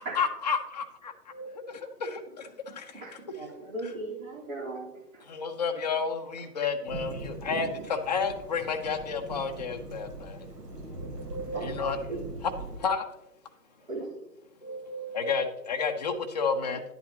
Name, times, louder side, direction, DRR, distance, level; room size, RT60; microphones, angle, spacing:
voice 1, 0.0-1.3 1.7-2.9 5.3-10.5 11.5-12.0 12.4-12.5 12.8-13.1 15.1-16.8, left 5 dB, 30° left, 5 dB, 0.5 m, -31 dB
voice 2, 1.3-1.8 3.4-3.5 10.9-12.2 14.6-15.5, right 4 dB, 5° right, -2 dB, 1.1 m, -40 dB
voice 3, 3.0-5.3 7.4-7.8 11.5-12.2 13.9-14.1, right 2 dB, 55° right, -4 dB, 3.8 m, -38 dB
Thunderstorm / Rain, 6.9-12.8, right 2 dB, 80° right, 1.8 m, -41 dB
10.5 x 8.4 x 2.9 m, 0.93 s
figure-of-eight pair, 130°, 48 cm